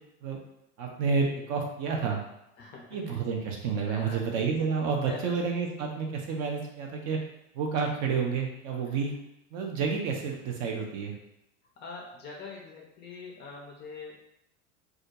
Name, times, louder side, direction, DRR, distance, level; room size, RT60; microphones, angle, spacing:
voice 1, 0.8-2.2 2.9-7.2 7.5-9.1 9.5-11.2, right 5 dB, 40° right, 1 dB, 0.5 m, -30 dB
voice 2, 2.6-3.2 3.9-4.5 5.0-5.3 8.8-9.0 11.8-14.3, left 4 dB, 25° left, -1 dB, 0.4 m, -44 dB
2.3 x 2.1 x 2.7 m, 0.81 s
hypercardioid pair, 90°, 42 cm